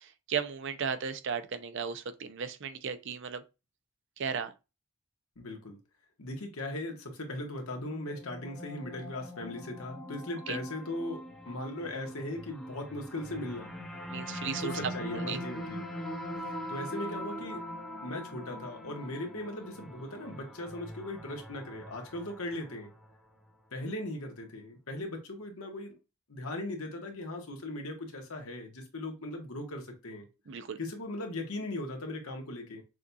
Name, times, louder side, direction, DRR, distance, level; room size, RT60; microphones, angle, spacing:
voice 1, 0.0-3.4 4.2-4.5 10.5-10.6 14.1-14.8 15.3-15.4 30.5-30.8, right 6 dB, 60° right, 0.5 m, -35 dB
voice 2, 5.4-5.8 6.2-13.7 14.5-15.8 16.7-17.6 18.0-22.9 23.7-25.9 26.3-30.3 30.8-32.8, left 1 dB, 80° left, 1.3 m, -38 dB
sound 1, 7.8-23.1, equal, ahead, 0.7 m, -42 dB
6.2 x 2.4 x 2.7 m
head